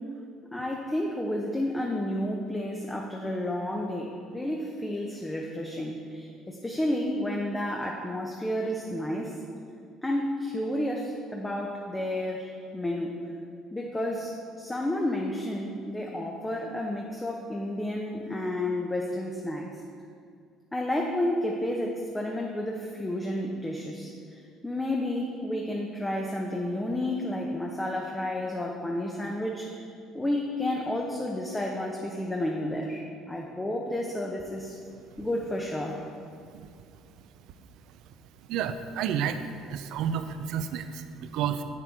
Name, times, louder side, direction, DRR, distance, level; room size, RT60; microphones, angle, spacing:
voice 1, 0.5-9.4 10.0-13.2 13.7-19.7 20.7-29.9 30.1-34.8 35.2-36.0, left 1 dB, 15° left, 0 dB, 0.8 m, -31 dB
voice 2, 38.5-41.6, right 8 dB, 60° right, 10 dB, 0.5 m, -31 dB
8.2 x 6.7 x 3.7 m, 2.3 s
hypercardioid pair, 55°, 0 cm